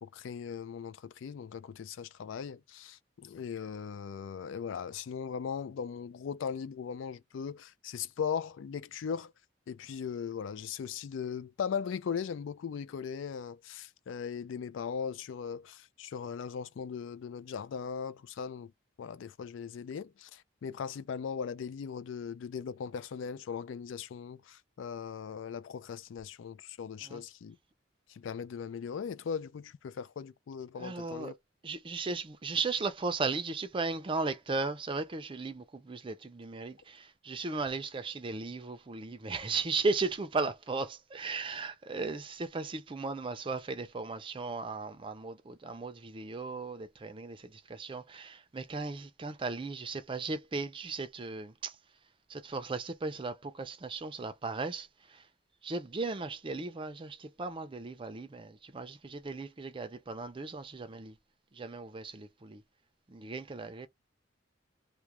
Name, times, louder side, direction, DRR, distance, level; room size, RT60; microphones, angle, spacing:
voice 1, 0.0-9.3 9.7-18.7 19.0-27.6 28.1-31.3, left 6 dB, 75° left, 0.3 m, -39 dB
voice 2, 30.8-31.3 31.6-51.8 52.3-55.2 55.6-61.2 61.5-62.6 63.1-63.9, right 3 dB, 25° right, 0.4 m, -36 dB
2.4 x 2.1 x 2.9 m
head